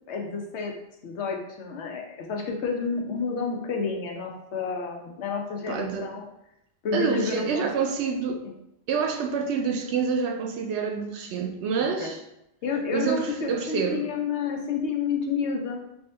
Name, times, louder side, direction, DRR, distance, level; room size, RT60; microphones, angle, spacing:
voice 1, 0.1-0.7 1.0-6.2 6.8-7.7 8.4-8.5 12.0-12.1 12.6-15.8, left 5 dB, 80° left, 1.0 m, -30 dB
voice 2, 5.7-6.2 6.9-8.4 8.9-12.2 12.9-14.1, right 6 dB, 85° right, 0.9 m, -27 dB
3.4 x 2.8 x 3.3 m
omnidirectional pair, 1.1 m